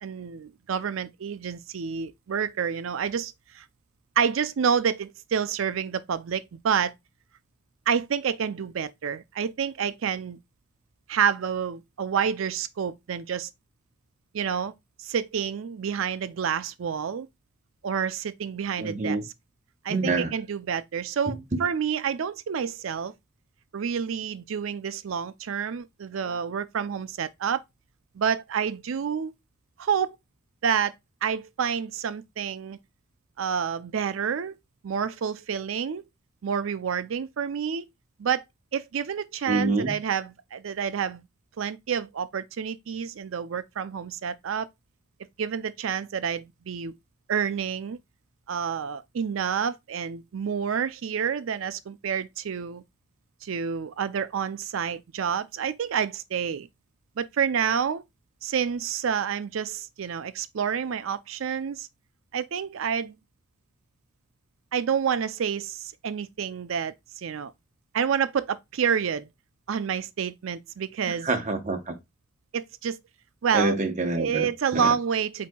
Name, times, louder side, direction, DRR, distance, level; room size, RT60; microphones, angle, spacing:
voice 1, 0.0-3.6 4.2-6.9 7.9-10.4 11.1-13.5 14.3-14.7 15.0-17.3 17.8-19.2 19.8-23.1 23.7-27.6 28.2-29.3 29.8-30.2 30.6-30.9 31.2-32.8 33.4-34.6 34.8-36.0 36.4-37.9 38.2-38.4 38.7-41.2 41.6-44.7 45.4-46.9 47.3-48.0 48.5-52.8 53.4-56.7 57.2-58.0 58.4-61.9 62.3-63.2 64.7-67.5 67.9-69.3 69.7-71.3 72.5-73.0 73.4-73.8 74.1-75.5, right 7 dB, 80° right, 0.4 m, -28 dB
voice 2, 18.8-19.2 19.9-20.3 21.3-21.6 39.5-40.0 71.2-72.0 73.5-74.9, right 2 dB, 35° right, 0.9 m, -27 dB
8.2 x 2.8 x 2.2 m
head